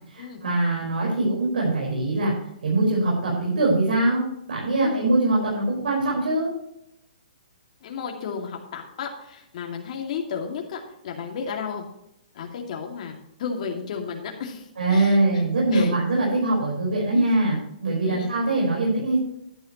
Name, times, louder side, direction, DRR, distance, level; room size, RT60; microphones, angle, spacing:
voice 1, 0.1-2.3 2.6-6.5 14.8-19.2, right 2 dB, 85° right, -4 dB, 5.0 m, -22 dB
voice 2, 4.7-5.1 7.8-11.9 12.3-15.2 15.7-15.9 17.1-17.3 18.0-18.3, left 6 dB, 50° left, 1 dB, 2.4 m, -33 dB
11.5 x 11.0 x 3.1 m, 0.80 s
hypercardioid pair, 150°, 5 cm